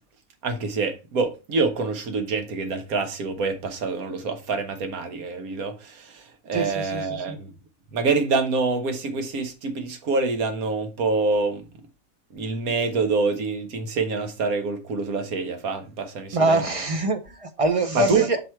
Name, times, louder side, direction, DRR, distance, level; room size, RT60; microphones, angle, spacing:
voice 1, 0.4-7.5 7.9-11.6 12.3-16.6 17.9-18.2, right 4 dB, 85° right, 1.5 m, -26 dB
voice 2, 6.5-7.4 16.3-18.4, right 2 dB, 40° right, 0.4 m, -24 dB
6.0 x 4.6 x 4.4 m
omnidirectional pair, 1.5 m